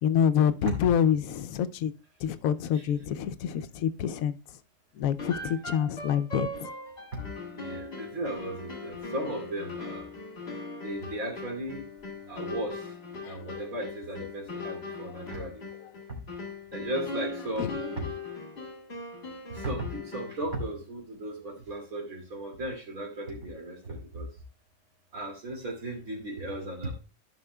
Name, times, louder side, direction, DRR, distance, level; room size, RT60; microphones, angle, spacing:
voice 1, 0.0-1.9 2.2-4.4 5.0-6.7 13.2-13.6 17.6-17.7, left 8 dB, 80° left, 1.0 m, -27 dB
sound 1, 5.2-20.5, left 3 dB, 45° left, 2.2 m, -40 dB
voice 2, 7.5-10.1 10.8-11.8 12.3-12.9 13.3-15.6 16.1-16.2 16.7-18.2 19.5-24.3 25.1-26.9, right 1 dB, 85° right, 3.0 m, -36 dB
13.0 x 5.5 x 2.2 m
omnidirectional pair, 1.5 m